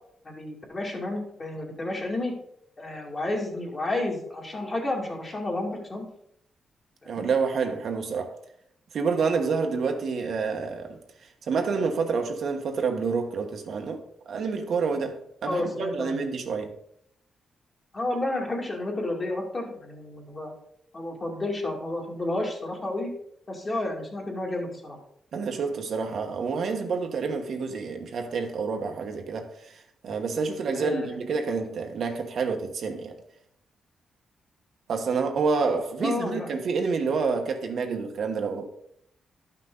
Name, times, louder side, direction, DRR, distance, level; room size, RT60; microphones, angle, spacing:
voice 1, 0.2-2.3 2.8-6.1 7.1-7.3 15.5-16.2 17.9-20.5 20.9-23.1 23.5-25.0 30.7-31.2 36.0-36.5, left 2 dB, 30° left, 2.2 m, -31 dB
voice 2, 7.1-8.3 8.9-11.0 11.5-14.0 14.3-16.7 25.3-29.7 30.0-33.1 34.9-38.6, right 5 dB, 60° right, 1.1 m, -28 dB
12.0 x 5.8 x 3.8 m
wide cardioid pair, 135°, 0 cm